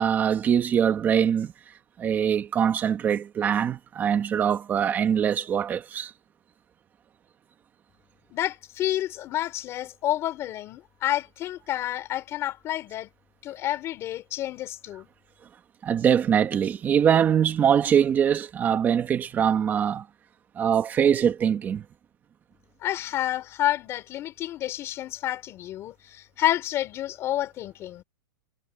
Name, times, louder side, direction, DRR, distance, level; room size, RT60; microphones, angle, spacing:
voice 1, 0.0-1.5 2.0-6.1 15.8-20.0 20.5-21.8, right 8 dB, 15° right, 1.6 m, -23 dB
voice 2, 8.3-13.1 13.4-15.1 22.8-28.0, left 13 dB, 20° left, 3.7 m, -29 dB
hypercardioid pair, 170°, 13 cm